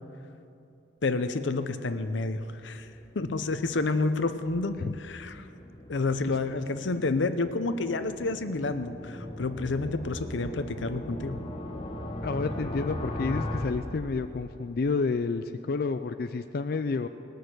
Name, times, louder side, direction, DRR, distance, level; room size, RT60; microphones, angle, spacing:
voice 1, 1.0-2.9 3.1-5.5 5.9-11.4, left 3 dB, 90° left, 10 dB, 0.7 m, -29 dB
sound 1, 2.2-14.7, left 1 dB, 30° left, 1.0 m, -39 dB
voice 2, 12.2-17.1, left 4 dB, 55° left, 8 dB, 0.4 m, -30 dB
19.5 x 6.6 x 7.9 m, 2.7 s
head